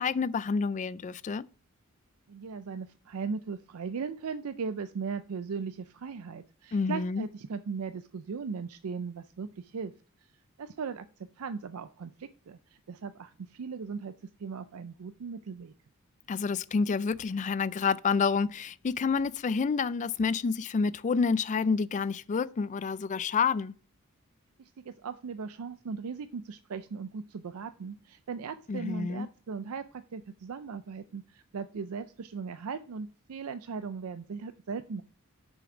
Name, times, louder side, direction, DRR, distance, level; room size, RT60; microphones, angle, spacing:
voice 1, 0.0-1.5 6.7-7.2 16.3-23.7 28.7-29.3, left 5 dB, 35° left, 0.3 m, -28 dB
voice 2, 2.3-9.9 10.6-11.1 11.4-12.6 12.9-14.1 14.4-15.7 24.6-35.0, right 5 dB, 90° right, 0.5 m, -38 dB
6.7 x 6.2 x 4.9 m
head